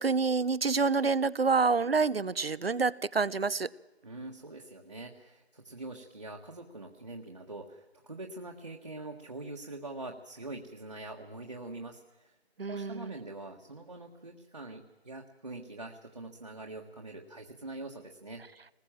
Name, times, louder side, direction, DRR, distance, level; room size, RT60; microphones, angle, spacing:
voice 1, 0.0-3.7 12.6-13.1, right 4 dB, 65° right, 20 dB, 0.8 m, -27 dB
voice 2, 4.0-12.3 12.7-18.4, right 2 dB, 35° right, 1 dB, 1.6 m, -44 dB
24.5 x 20.0 x 7.5 m, 1.0 s
figure-of-eight pair, 180°, 33 cm